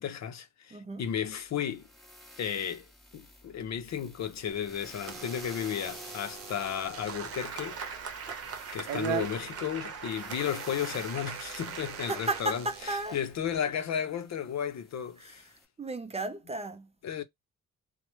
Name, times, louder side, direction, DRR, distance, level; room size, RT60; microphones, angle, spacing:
voice 1, 0.0-1.9 2.4-2.8 3.1-7.8 8.7-15.5 17.0-17.2, left 8 dB, 55° left, 0.6 m, -34 dB
voice 2, 0.7-1.0 8.3-8.4 12.1-13.2 15.2-15.3 15.8-16.9, right 2 dB, 20° right, 0.4 m, -34 dB
sound 1, 1.0-15.6, equal, ahead, 0.9 m, -51 dB
Door / Alarm, 4.3-13.6, right 11 dB, 80° right, 0.5 m, -43 dB
sound 2, 6.9-12.4, right 5 dB, 45° right, 0.8 m, -40 dB
2.9 x 2.1 x 3.0 m
cardioid pair, 90°, 33 cm